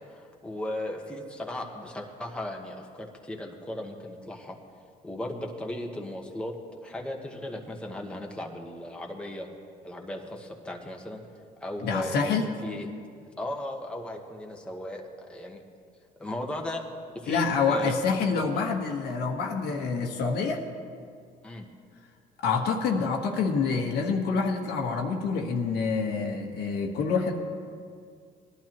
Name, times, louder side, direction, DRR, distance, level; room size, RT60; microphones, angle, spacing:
voice 1, 0.0-4.6 5.0-6.5 6.8-9.5 9.8-11.2 11.6-12.9 13.4-15.6 16.2-16.8 17.1-18.0 18.3-18.6 21.4-21.7, left 1 dB, 5° left, 0 dB, 1.3 m, -36 dB
voice 2, 11.8-12.5 17.3-20.6 22.4-27.3, left 5 dB, 75° left, 2 dB, 1.4 m, -27 dB
19.0 x 11.5 x 3.0 m, 2.2 s
cardioid pair, 110°, 17 cm